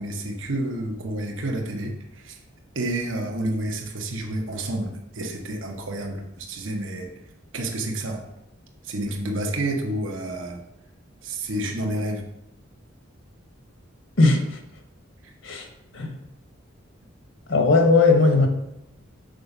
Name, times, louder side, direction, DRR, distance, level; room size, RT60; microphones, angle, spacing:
voice 1, 0.0-2.4 2.7-7.1 7.5-8.2 8.8-10.6 11.2-12.2, right 1 dB, 75° right, 2 dB, 1.0 m, -29 dB
voice 2, 14.2-14.6 15.4-15.7 15.9-16.2 17.5-18.5, left 3 dB, 80° left, 4 dB, 1.3 m, -18 dB
6.5 x 4.9 x 5.4 m, 0.84 s
head